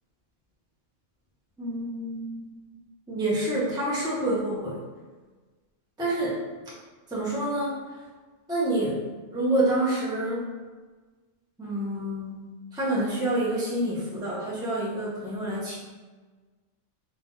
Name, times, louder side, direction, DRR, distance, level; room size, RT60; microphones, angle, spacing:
voice 1, 1.6-2.5 3.1-4.8 6.0-6.4 7.1-7.7 8.5-9.0 9.3-10.5 11.6-15.8, right 1 dB, 5° right, -8 dB, 0.9 m, -28 dB
4.0 x 2.6 x 3.8 m, 1.3 s
omnidirectional pair, 1.3 m